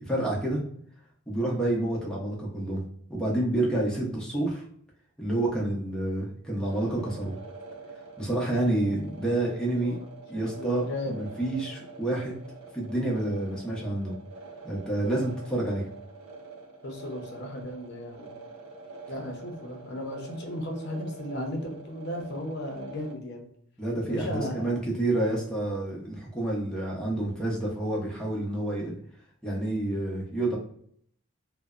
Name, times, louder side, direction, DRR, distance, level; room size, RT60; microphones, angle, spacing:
voice 1, 0.1-0.6 1.3-2.8 3.1-4.6 5.2-7.3 8.2-10.0 10.3-12.3 12.7-14.1 14.6-15.8 23.8-28.9 29.4-30.6, right 1 dB, 5° left, -4 dB, 0.7 m, -28 dB
sound 1, 6.6-23.1, right 3 dB, 80° right, 0.6 m, -45 dB
voice 2, 10.5-11.3 16.8-18.3 19.1-23.5 24.1-24.7, left 1 dB, 50° left, 2 dB, 0.6 m, -35 dB
2.6 x 2.1 x 2.3 m, 0.64 s
head